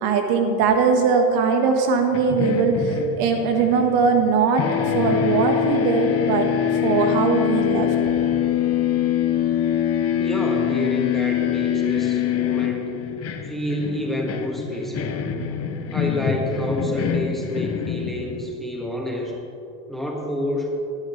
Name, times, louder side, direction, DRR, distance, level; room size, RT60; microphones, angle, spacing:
voice 1, 0.0-6.5 6.8-7.9, right 5 dB, 55° right, 4 dB, 1.6 m, -20 dB
sound 1, 2.1-4.3 4.6-18.6, left 9 dB, 30° left, 1.0 m, -24 dB
voice 2, 10.2-12.9 13.5-15.2 15.9-19.4 19.9-20.8, left 1 dB, ahead, -1 dB, 1.7 m, -28 dB
18.0 x 11.5 x 3.3 m, 2.8 s
supercardioid pair, 125°, 45 cm